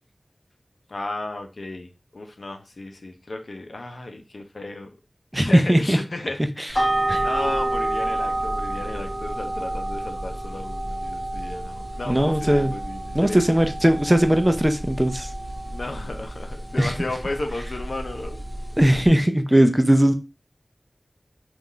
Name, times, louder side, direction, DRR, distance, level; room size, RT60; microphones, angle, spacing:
voice 1, 0.9-4.9 5.4-6.4 6.7-6.8 7.2-13.6 15.7-18.4, left 2 dB, 75° left, 5 dB, 0.7 m, -34 dB
voice 2, 5.3-6.0 7.1-7.2 12.1-12.7 13.1-15.3 16.8-16.9 18.8-20.1, right 1 dB, 10° right, 7 dB, 0.6 m, -19 dB
sound 1, 6.7-19.1, right 1 dB, 25° left, 1.6 m, -29 dB
4.2 x 2.5 x 3.8 m, 0.29 s
wide cardioid pair, 60°, 0 cm